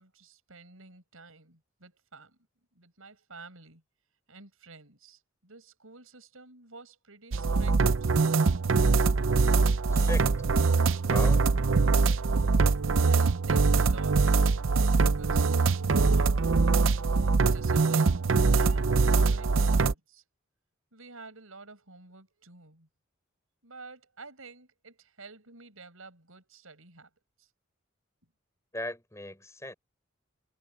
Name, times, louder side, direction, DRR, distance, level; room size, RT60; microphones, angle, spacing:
voice 1, 0.0-2.4 2.7-3.8 4.3-7.8 12.9-15.7 15.9-16.5 17.5-18.3 18.5-20.2 20.9-22.9 23.6-27.1 27.4-27.5, right 3 dB, 90° right, 6.2 m, -49 dB
sound 1, 7.3-19.9, right 4 dB, 70° right, 0.6 m, -23 dB
voice 2, 9.9-10.3 11.0-11.5 28.7-29.7, left 1 dB, 15° left, 6.5 m, -37 dB
head